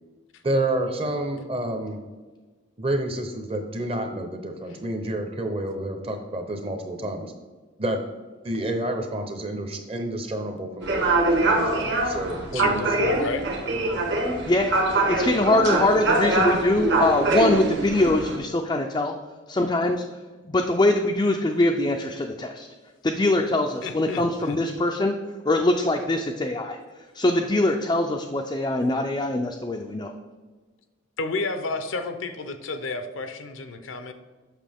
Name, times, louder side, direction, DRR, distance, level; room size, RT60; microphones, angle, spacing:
voice 1, 0.4-2.0 2.8-7.3 7.8-8.0 8.4-13.1, right 1 dB, 30° right, 5 dB, 0.7 m, -29 dB
sound 1, 10.8-18.4, right 2 dB, 60° right, 1.2 m, -23 dB
voice 2, 12.5-13.5 14.7-14.8 23.8-24.6 31.2-34.1, left 3 dB, 75° left, 8 dB, 0.6 m, -31 dB
voice 3, 15.1-19.1 19.5-20.0 20.4-22.7 23.0-25.1 25.5-26.8 27.1-30.1, left 2 dB, 20° left, 2 dB, 0.3 m, -23 dB
7.4 x 5.9 x 3.5 m, 1.3 s
head